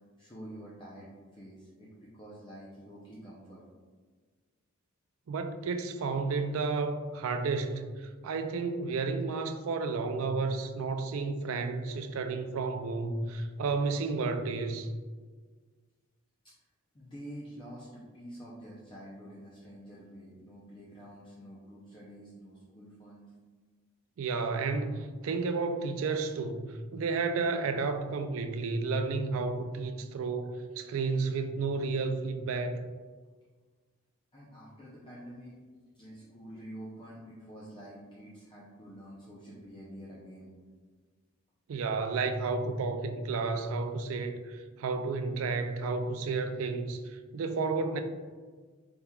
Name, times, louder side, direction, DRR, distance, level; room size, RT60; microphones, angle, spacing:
voice 1, 0.2-3.6 16.4-16.5 16.9-23.3 34.3-35.6 35.9-40.5, equal, 25° left, -7 dB, 0.5 m, -48 dB
voice 2, 5.3-14.9 24.2-32.9 41.7-48.0, right 4 dB, 75° right, 7 dB, 0.4 m, -32 dB
4.3 x 3.5 x 2.2 m, 1.5 s
head